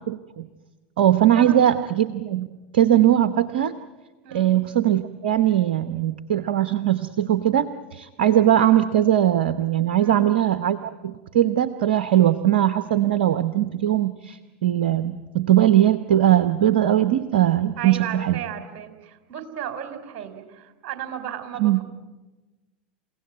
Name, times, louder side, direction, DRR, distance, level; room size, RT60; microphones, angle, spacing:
voice 1, 0.1-0.4 1.0-2.5 2.7-3.7 4.3-18.4 21.6-21.8, right 12 dB, 65° right, 12 dB, 0.9 m, -20 dB
voice 2, 1.4-1.8 4.2-4.5 10.0-10.3 17.8-21.8, right 9 dB, 45° right, 8 dB, 3.6 m, -35 dB
29.5 x 17.0 x 9.1 m, 1.2 s
figure-of-eight pair, 85°, 6 cm